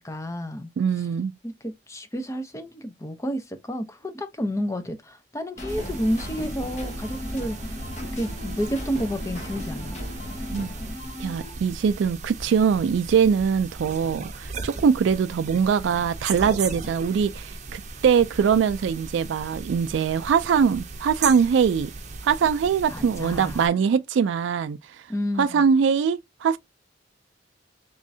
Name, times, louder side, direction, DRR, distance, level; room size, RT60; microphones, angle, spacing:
voice 1, 0.0-0.7 1.4-7.9 8.1-10.0 22.9-23.7 25.1-25.7, equal, 15° left, 0.5 m, -30 dB
voice 2, 0.8-1.3 10.5-10.7 11.2-21.9 22.2-24.8 25.4-26.6, right 6 dB, 80° right, 0.3 m, -22 dB
sound 1, 5.6-11.5, left 1 dB, 40° left, 1.1 m, -35 dB
sound 2, 5.7-23.7, right 4 dB, 40° right, 0.7 m, -37 dB
3.5 x 3.1 x 2.6 m
head